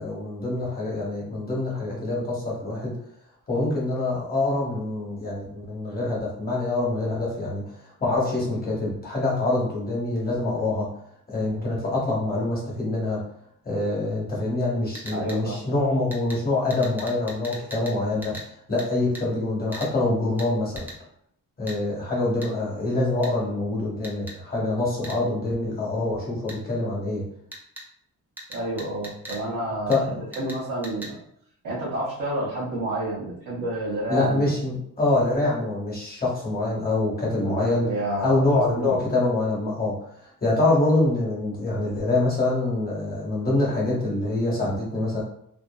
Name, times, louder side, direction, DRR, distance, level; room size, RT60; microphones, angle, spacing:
voice 1, 0.0-2.9 3.5-10.9 11.3-13.2 13.6-18.4 18.7-20.9 21.6-27.2 29.9-30.2 34.1-37.9 38.2-39.9 40.2-45.2, left 2 dB, 25° left, -5 dB, 1.0 m, -25 dB
sound 1, 14.9-15.4 16.1-16.4 16.7-18.0 18.2-18.5 18.8-18.9 19.1-19.2 19.7-19.9 20.4-20.5 20.8-21.0 21.7-21.8 22.4-22.5 23.2-23.3 24.0-24.4 25.0-25.2 26.5-26.6 27.5-27.8 28.4-29.4 29.9-30.0 30.3-30.6 30.8-31.1, right 1 dB, 5° right, 0.4 m, -39 dB
voice 2, 15.1-15.6 28.5-31.2 31.6-34.6 37.4-39.0, right 1 dB, 75° right, -8 dB, 0.8 m, -30 dB
2.6 x 2.5 x 2.2 m, 0.71 s
wide cardioid pair, 135°, 34 cm